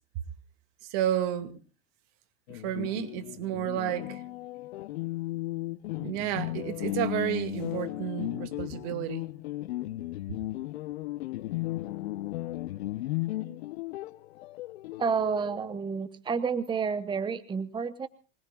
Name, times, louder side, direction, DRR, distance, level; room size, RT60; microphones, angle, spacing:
voice 1, 0.9-1.6 2.5-4.2 5.9-9.3, right 11 dB, 55° right, 2.3 m, -31 dB
sound 1, 2.5-15.8, left 17 dB, 80° left, 0.9 m, -35 dB
voice 2, 15.0-18.1, right 5 dB, 15° right, 1.0 m, -30 dB
25.0 x 20.5 x 2.4 m
supercardioid pair, 120°, 32 cm